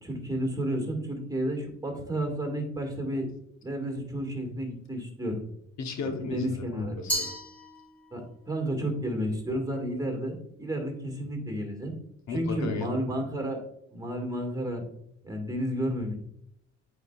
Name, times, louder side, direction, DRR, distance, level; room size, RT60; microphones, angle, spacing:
voice 1, 0.0-3.3 3.6-5.4 6.2-7.0 8.1-12.0 12.3-13.6 13.9-14.8 15.2-16.2, equal, 10° right, 2 dB, 1.8 m, -31 dB
voice 2, 5.8-7.3 12.3-12.9, left 4 dB, 65° left, 4 dB, 1.0 m, -35 dB
Glass, 7.1-8.3, equal, 5° left, 2.2 m, -33 dB
9.1 x 4.4 x 2.4 m, 0.71 s
cardioid pair, 90°, 30 cm